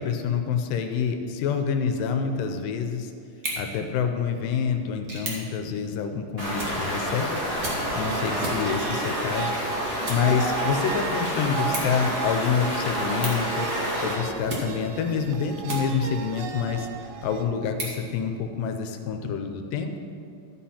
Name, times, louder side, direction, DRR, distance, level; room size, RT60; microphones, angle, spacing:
voice 1, 0.0-3.1 3.6-7.4 7.9-13.7 14.0-19.9, left 6 dB, 80° left, 6 dB, 2.2 m, -27 dB
sound 1, 3.3-16.3 16.8-18.8, right 1 dB, 40° right, 1.5 m, -39 dB
Stream, 6.4-14.1, equal, 10° right, 2.2 m, -29 dB
sound 2, 7.6-17.5, right 6 dB, 80° right, 2.3 m, -35 dB
13.0 x 7.3 x 4.3 m, 2.5 s
omnidirectional pair, 4.0 m